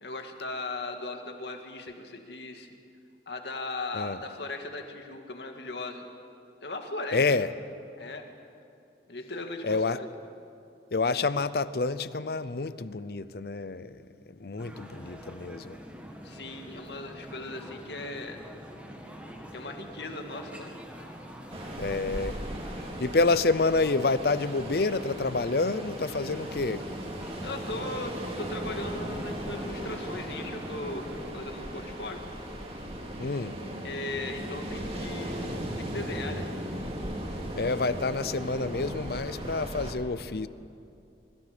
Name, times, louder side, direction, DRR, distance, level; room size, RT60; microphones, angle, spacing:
voice 1, 0.0-2.7 3.3-6.0 6.6-7.2 8.0-8.3 9.1-10.1 16.2-18.4 19.5-20.7 23.3-23.4 27.4-32.2 33.8-36.5, left 2 dB, 75° left, 2.0 m, -38 dB
voice 2, 7.1-7.5 9.6-10.0 10.9-15.8 21.8-22.4 23.0-26.8 33.2-33.6 37.6-40.5, left 3 dB, 60° left, 0.6 m, -28 dB
sound 1, 14.6-31.3, equal, 10° right, 2.0 m, -45 dB
Ocean, 21.5-39.9, right 1 dB, 35° right, 2.4 m, -37 dB
25.5 x 23.5 x 5.2 m
head